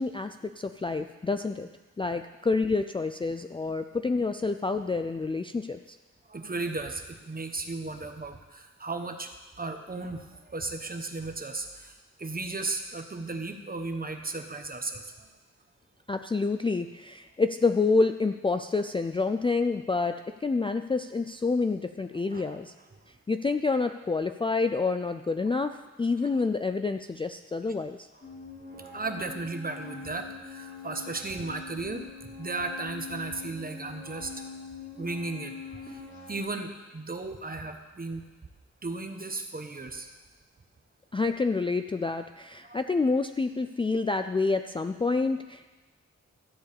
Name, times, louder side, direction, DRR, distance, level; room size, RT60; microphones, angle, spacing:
voice 1, 0.0-1.7 2.0-6.0 16.1-22.7 23.3-28.1 41.1-45.7, left 3 dB, 20° left, 8 dB, 0.3 m, -28 dB
voice 2, 6.3-9.3 9.6-15.3 22.3-22.6 28.8-34.3 35.0-36.0 36.3-38.2 38.8-40.1 42.6-42.8, right 3 dB, 30° right, 6 dB, 1.1 m, -35 dB
sound 1, 28.2-36.4, left 4 dB, 40° left, 2.6 m, -43 dB
13.5 x 4.7 x 8.6 m, 1.2 s
wide cardioid pair, 85°, 29 cm